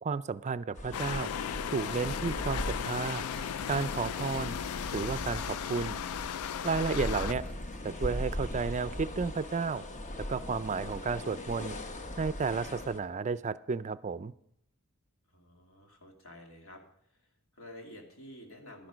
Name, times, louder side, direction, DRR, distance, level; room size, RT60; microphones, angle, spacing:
voice 1, 0.0-1.3 1.7-3.3 3.7-4.6 4.9-6.0 6.6-7.4 7.8-9.8 10.3-11.8 12.2-14.3, right 4 dB, 35° right, 15 dB, 0.4 m, -32 dB
sound 1, 0.7-13.0, left 1 dB, 35° left, 0.9 m, -39 dB
sound 2, 0.9-7.3, left 9 dB, 90° left, 0.4 m, -36 dB
sound 3, 2.7-8.3, right 1 dB, 5° left, 1.7 m, -53 dB
voice 2, 15.3-16.8 17.1-18.9, left 1 dB, 70° left, 2 dB, 2.5 m, -51 dB
12.0 x 10.5 x 5.0 m, 0.71 s
head